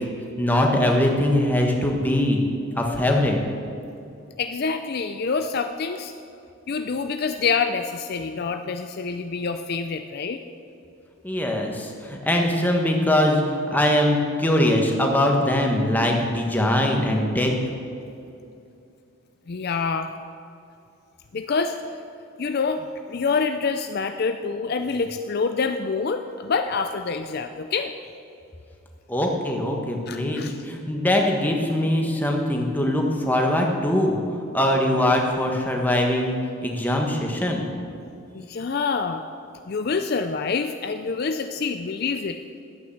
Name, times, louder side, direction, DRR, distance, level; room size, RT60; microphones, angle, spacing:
voice 1, 0.4-2.4 2.8-3.4 11.2-13.4 13.7-17.5 29.1-34.2 34.5-36.4 36.6-37.6, left 1 dB, 10° left, 1 dB, 1.3 m, -22 dB
voice 2, 4.4-6.1 6.7-10.4 19.5-20.1 21.3-21.8 22.4-27.9 30.1-30.5 38.3-39.2 39.7-42.4, left 5 dB, 45° left, 7 dB, 0.4 m, -26 dB
11.5 x 9.2 x 7.2 m, 2.6 s
head